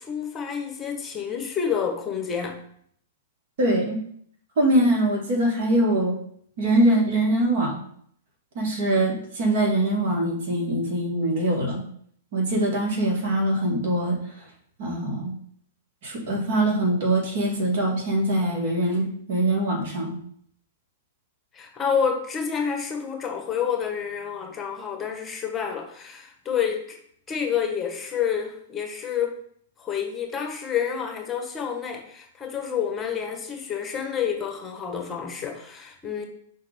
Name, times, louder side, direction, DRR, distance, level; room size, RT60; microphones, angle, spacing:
voice 1, 0.0-2.6 21.5-27.0 27.3-29.4 29.8-36.2, left 7 dB, 20° left, 3 dB, 1.4 m, -29 dB
voice 2, 3.6-4.0 4.6-6.2 6.6-7.8 8.5-11.8 12.3-14.4 14.8-15.3 16.0-20.2, right 1 dB, 55° right, 0 dB, 2.4 m, -23 dB
5.3 x 4.0 x 5.3 m, 0.64 s
hypercardioid pair, 120°, 0 cm